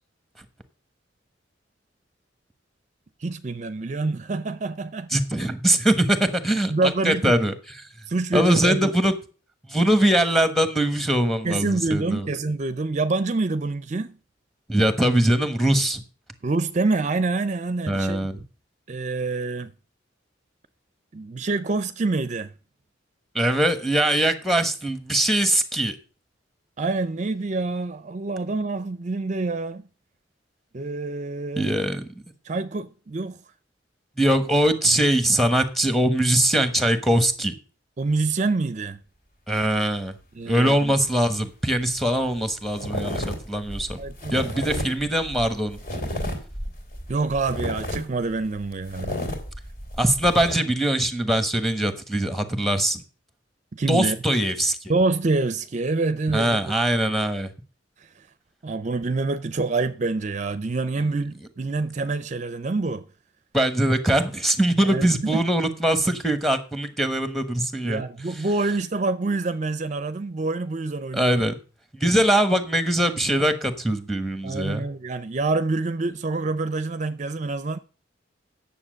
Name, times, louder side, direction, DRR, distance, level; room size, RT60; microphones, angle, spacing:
voice 1, 3.2-5.1 6.7-7.3 8.1-8.9 11.4-14.2 16.4-18.3 18.9-19.7 21.1-22.5 26.8-29.8 30.7-31.7 32.4-33.4 38.0-39.0 40.3-40.9 44.0-44.4 44.7-44.9 47.1-49.2 53.7-54.2 54.9-56.6 58.0-58.3 58.6-63.1 64.8-65.4 67.8-71.4 74.4-77.8, right 3 dB, 40° right, 0.5 m, -26 dB
voice 2, 5.1-7.9 8.3-9.1 9.7-12.3 14.7-16.0 17.9-18.4 23.3-25.9 31.6-32.1 34.2-37.5 39.5-40.1 40.5-44.0 44.3-45.8 50.0-53.0 53.9-54.8 56.3-57.5 63.5-68.0 71.1-71.5 72.0-74.8, right 1 dB, ahead, 1.2 m, -22 dB
sound 1, 41.8-41.9 42.1-42.4 42.7-50.6, left 1 dB, 50° left, 2.8 m, -32 dB
9.8 x 7.1 x 6.3 m
head